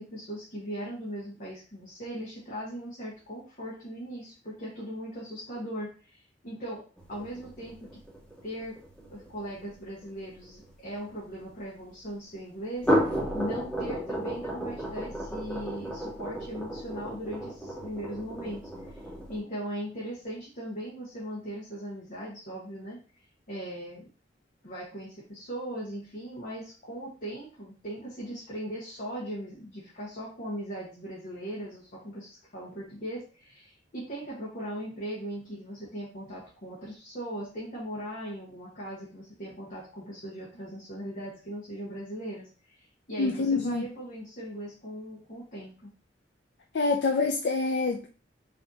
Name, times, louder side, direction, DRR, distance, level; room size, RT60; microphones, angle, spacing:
voice 1, 0.0-7.9 8.4-8.8 9.1-19.0 19.3-24.1 24.6-45.9, equal, 55° left, 1.5 m, -39 dB
sound 1, 7.0-11.5 12.7-19.4, equal, 10° left, 1.4 m, -33 dB
voice 2, 43.2-43.9 46.7-48.1, left 3 dB, 70° left, 0.5 m, -26 dB
5.3 x 3.3 x 2.8 m
head